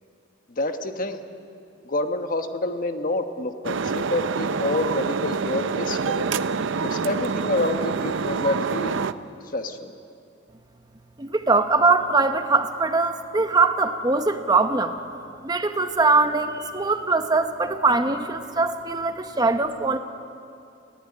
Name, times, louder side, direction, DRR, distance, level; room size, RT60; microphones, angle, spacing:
voice 1, 0.6-1.2 1.8-6.3 6.8-9.0 9.5-9.9, left 2 dB, 45° left, 7 dB, 1.2 m, -27 dB
sound 1, 3.6-9.1, right 5 dB, 75° right, 0.6 m, -26 dB
voice 2, 11.2-14.9 15.4-20.0, right 3 dB, 20° right, 7 dB, 0.9 m, -22 dB
20.5 x 16.0 x 9.7 m, 2.5 s
head